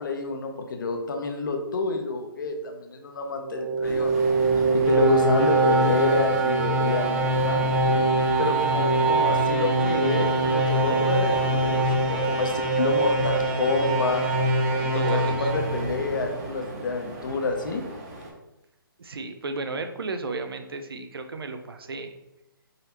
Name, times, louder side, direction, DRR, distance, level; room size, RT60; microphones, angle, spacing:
voice 1, 0.0-4.3 4.7-7.6 8.4-14.3 14.7-17.8, left 4 dB, 60° left, 4 dB, 0.7 m, -28 dB
sound 1, 3.4-16.4, right 2 dB, 10° right, 0.4 m, -23 dB
sound 2, 3.8-18.3, right 1 dB, 40° right, 1.2 m, -38 dB
voice 2, 14.9-15.5 19.0-22.1, right 3 dB, 80° right, 7 dB, 0.5 m, -33 dB
3.9 x 3.2 x 2.8 m, 0.91 s
hypercardioid pair, 150°, 12 cm